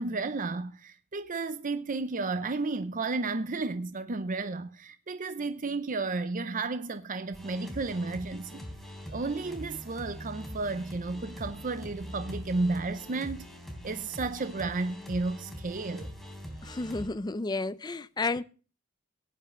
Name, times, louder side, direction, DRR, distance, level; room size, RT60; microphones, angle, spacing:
voice 1, 0.0-8.6 9.1-13.5 13.8-16.1, right 3 dB, 40° right, 0.7 m, -32 dB
sound 1, 7.3-17.1, equal, ahead, 3.5 m, -43 dB
voice 2, 16.6-18.4, left 3 dB, 20° left, 0.5 m, -32 dB
17.5 x 10.0 x 3.1 m
head